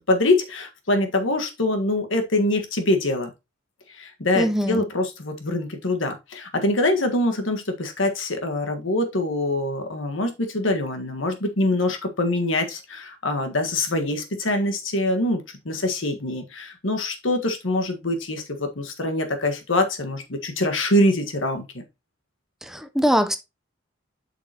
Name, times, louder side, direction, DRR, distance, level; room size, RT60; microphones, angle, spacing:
voice 1, 0.1-3.3 3.9-21.8, left 1 dB, 90° left, 1.5 m, -24 dB
voice 2, 4.4-4.9 22.6-23.4, equal, ahead, 0.6 m, -22 dB
7.6 x 5.9 x 2.9 m
head